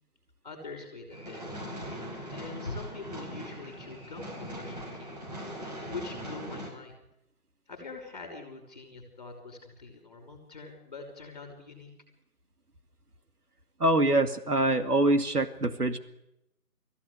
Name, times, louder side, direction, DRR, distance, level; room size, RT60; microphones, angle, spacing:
voice 1, 0.4-1.4 2.3-5.1 5.9-7.0 7.7-11.9, left 3 dB, 25° left, 3 dB, 5.7 m, -43 dB
sound 1, 1.1-6.7, equal, 25° right, 5.4 m, -40 dB
voice 2, 13.8-16.0, right 2 dB, 70° right, 8 dB, 2.4 m, -24 dB
24.5 x 16.0 x 8.2 m, 0.84 s
figure-of-eight pair, 170°, 47 cm